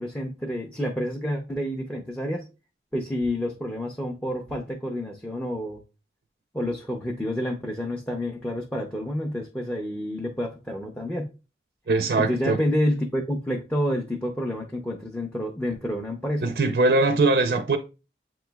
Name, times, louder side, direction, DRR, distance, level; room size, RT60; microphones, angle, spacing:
voice 1, 0.0-2.5 2.9-5.8 6.5-11.3 12.2-16.5, equal, 10° left, 0.4 m, -29 dB
voice 2, 11.9-12.6 16.4-17.8, right 3 dB, 60° right, 0.4 m, -21 dB
7.8 x 3.0 x 2.2 m
head